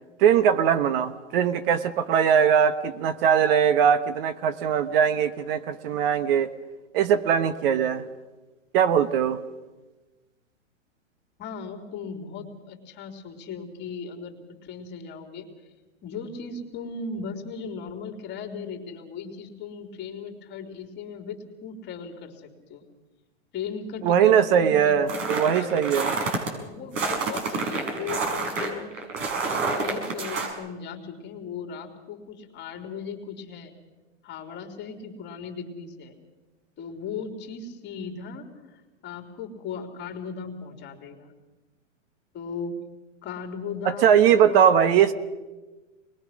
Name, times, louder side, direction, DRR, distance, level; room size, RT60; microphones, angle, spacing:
voice 1, 0.2-6.5 6.9-8.0 8.7-9.4 24.0-26.1 43.8-45.1, right 8 dB, 50° right, 11 dB, 1.1 m, -20 dB
voice 2, 11.4-15.5 16.0-22.8 23.5-25.0 25.5-26.1 26.5-33.7 34.2-36.2 36.8-41.3 42.3-42.8 43.2-45.0, left 5 dB, 30° left, 4 dB, 3.4 m, -37 dB
sound 1, 25.1-26.5 26.9-30.5, right 4 dB, 70° right, 6.2 m, -28 dB
24.5 x 21.0 x 6.3 m, 1.2 s
hypercardioid pair, 125°, 38 cm